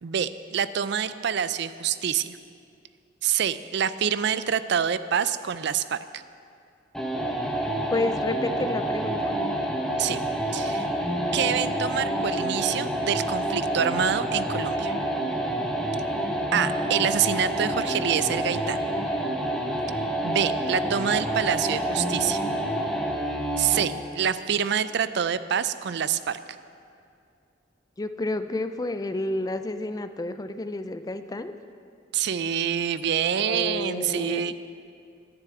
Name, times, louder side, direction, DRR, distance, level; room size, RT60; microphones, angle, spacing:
voice 1, 0.0-2.4 3.2-6.2 10.0-10.2 10.5-10.9 11.3-14.9 16.5-18.8 20.2-22.4 23.6-26.4 32.1-34.5, right 8 dB, 65° right, 14 dB, 0.4 m, -26 dB
sound 1, 6.9-24.0, right 1 dB, 5° left, 1.0 m, -28 dB
voice 2, 7.9-9.3 28.0-31.5 33.4-34.4, left 2 dB, 20° left, 10 dB, 0.4 m, -30 dB
11.0 x 6.7 x 8.4 m, 2.4 s
head